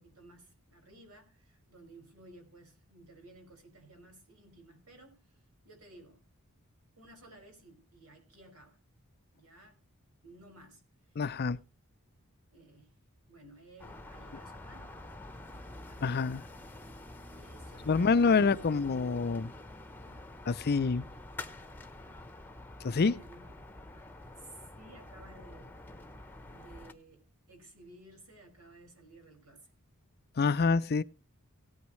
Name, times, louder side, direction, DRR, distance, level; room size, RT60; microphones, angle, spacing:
voice 1, 0.0-5.4 5.6-6.2 7.0-8.8 9.3-9.8 10.2-10.8 11.1-11.2 12.5-13.0 13.3-14.9 15.8-16.3 17.3-18.4 20.0-20.2 20.8-20.9 22.9-23.6 24.4-25.8 26.4-29.7, right 2 dB, 80° right, 5.4 m, -56 dB
voice 2, 11.2-11.6 16.0-16.4 17.9-19.5 20.5-21.1 22.8-23.1 30.4-31.0, left 4 dB, 45° left, 0.5 m, -26 dB
sound 1, 13.8-26.9, left 2 dB, 10° left, 1.0 m, -47 dB
17.5 x 9.5 x 3.1 m
head